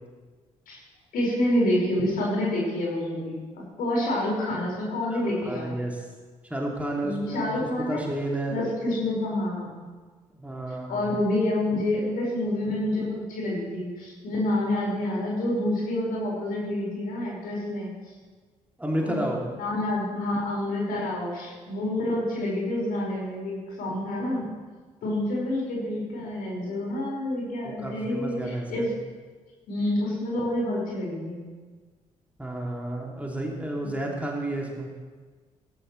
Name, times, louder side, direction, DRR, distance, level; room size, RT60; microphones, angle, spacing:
voice 1, 1.1-5.7 7.0-8.0 8.5-9.8 10.9-17.9 19.0-19.2 19.6-24.5 25.0-28.9 29.7-31.5, left 1 dB, 60° left, -4 dB, 5.6 m, -28 dB
voice 2, 5.1-6.0 6.5-7.5 7.8-8.6 10.4-11.0 18.8-19.4 27.6-28.9 32.4-34.9, right 1 dB, 10° right, -2 dB, 2.9 m, -31 dB
18.0 x 16.5 x 3.3 m, 1.4 s
figure-of-eight pair, 45°, 17 cm